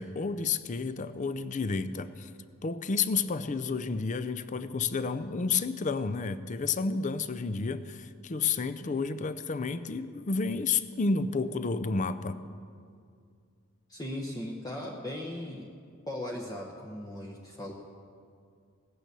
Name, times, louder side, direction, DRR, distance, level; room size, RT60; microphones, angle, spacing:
voice 1, 0.0-2.3 2.6-12.4, left 4 dB, 35° left, 13 dB, 0.5 m, -31 dB
voice 2, 13.9-15.7 16.1-17.7, left 1 dB, 15° left, -1 dB, 1.0 m, -38 dB
17.0 x 9.1 x 6.8 m, 2.3 s
head